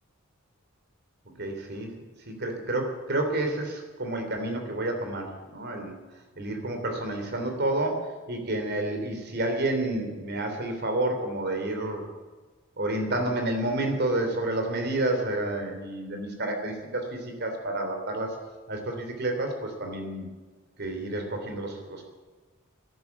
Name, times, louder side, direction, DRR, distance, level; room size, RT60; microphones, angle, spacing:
voice 1, 1.4-2.0 2.3-6.0 6.4-12.0 12.8-18.3 18.7-20.3 20.8-22.1, right 2 dB, 50° right, 4 dB, 3.3 m, -30 dB
13.0 x 11.0 x 9.3 m, 1.3 s
head